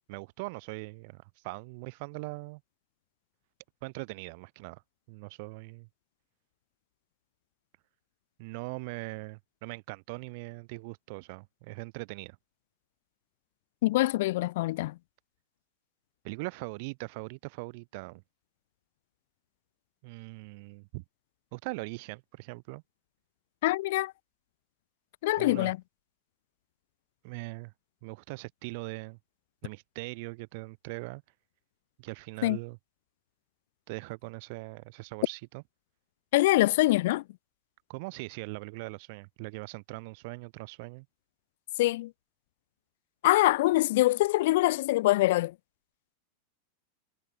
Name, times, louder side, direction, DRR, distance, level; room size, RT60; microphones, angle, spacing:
voice 1, 0.1-2.6 3.8-4.8 5.1-5.9 8.4-12.4 16.2-18.2 20.0-21.0 21.5-22.8 25.3-25.7 27.2-27.7 28.0-29.2 29.6-31.2 32.0-32.8 33.9-35.6 37.9-41.1, right 28 dB, 45° right, 4.5 m, -41 dB
voice 2, 13.8-14.9 23.6-24.1 25.2-25.8 32.4-32.6 36.3-37.2 41.8-42.1 43.2-45.5, left 18 dB, 55° left, 0.3 m, -24 dB
figure-of-eight pair, 90°, 0 cm